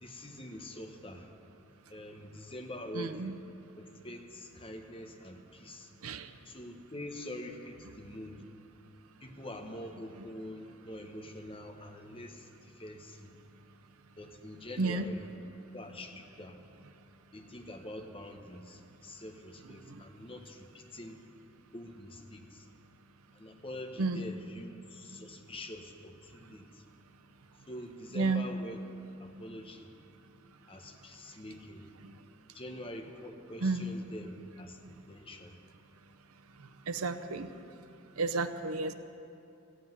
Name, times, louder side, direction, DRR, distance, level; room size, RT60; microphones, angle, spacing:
voice 1, 0.0-1.3 1.9-3.4 3.8-5.9 6.4-8.4 9.2-13.3 14.2-15.4 15.7-16.6 17.3-21.2 21.7-22.7 23.3-26.8 27.7-28.8 29.2-29.9 30.7-31.8 32.5-35.6, left 1 dB, 25° left, 3 dB, 1.0 m, -45 dB
voice 2, 2.9-3.3 6.0-6.3 14.8-15.1 19.9-20.0 24.0-24.2 28.1-28.4 32.0-32.1 33.6-33.9 36.9-37.5 38.2-38.9, right 3 dB, 80° right, 9 dB, 0.7 m, -32 dB
15.5 x 7.8 x 9.4 m, 2.7 s
head